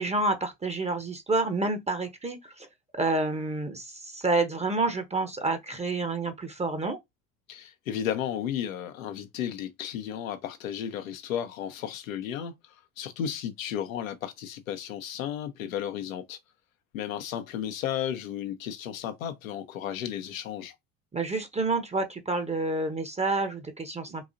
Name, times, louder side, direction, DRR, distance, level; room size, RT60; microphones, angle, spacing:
voice 1, 0.0-2.7 2.9-7.0 21.1-24.3, right 3 dB, 15° right, 0.7 m, -29 dB
voice 2, 7.5-16.4 16.9-20.7, left 9 dB, 80° left, 0.7 m, -34 dB
3.9 x 2.8 x 2.5 m
hypercardioid pair, 70°, 40 cm